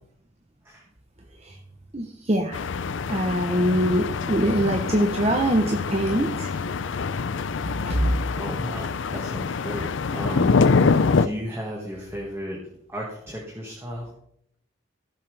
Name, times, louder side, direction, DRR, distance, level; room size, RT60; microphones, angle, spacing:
voice 1, 1.9-2.6 3.1-6.5 7.8-8.1, right 1 dB, 30° right, 3 dB, 0.9 m, -23 dB
sound 1, 2.5-11.3, left 4 dB, 65° left, 0.5 m, -25 dB
voice 2, 8.3-10.6 11.2-12.6 12.9-14.1, equal, 15° right, -4 dB, 1.8 m, -34 dB
16.0 x 7.4 x 3.4 m, 0.71 s
head